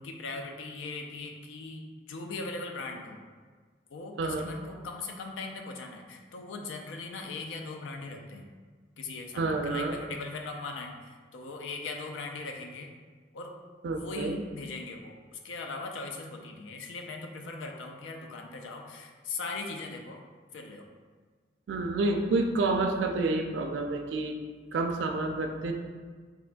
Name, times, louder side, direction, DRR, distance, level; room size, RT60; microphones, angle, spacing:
voice 1, 0.0-3.2 3.9-8.5 9.0-12.9 13.3-13.5 13.9-20.2 20.5-20.9, left 3 dB, 85° left, 3 dB, 0.4 m, -39 dB
voice 2, 4.2-4.5 9.4-10.0 13.8-14.4 21.7-24.4 24.7-25.7, right 3 dB, 70° right, 4 dB, 0.3 m, -29 dB
3.6 x 2.2 x 2.4 m, 1.5 s
head